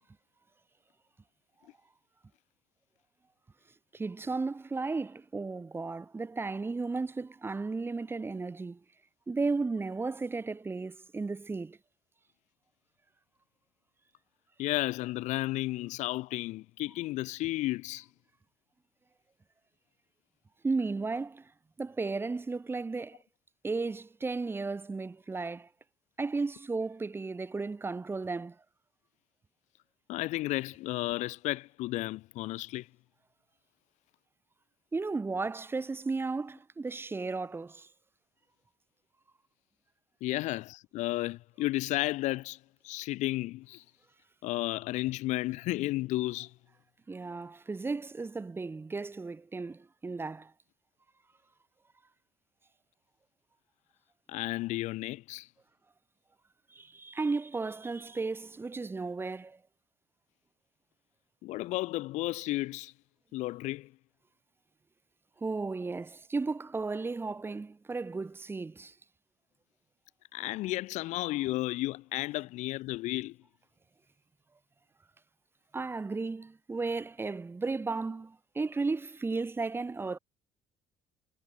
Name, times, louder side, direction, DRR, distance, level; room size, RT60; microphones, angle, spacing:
voice 1, 3.9-8.8 9.3-11.8 20.6-21.5 21.8-23.2 23.6-25.7 26.2-28.6 34.9-37.9 47.1-50.5 56.7-59.6 65.4-68.9 75.7-80.2, right 3 dB, 20° right, 1.2 m, -34 dB
voice 2, 14.6-18.0 30.1-32.9 40.2-42.6 42.8-43.8 44.4-46.5 54.3-55.5 61.4-62.9 63.3-63.9 70.3-73.4, left 18 dB, 75° left, 0.7 m, -33 dB
cardioid pair, 110°, 12 cm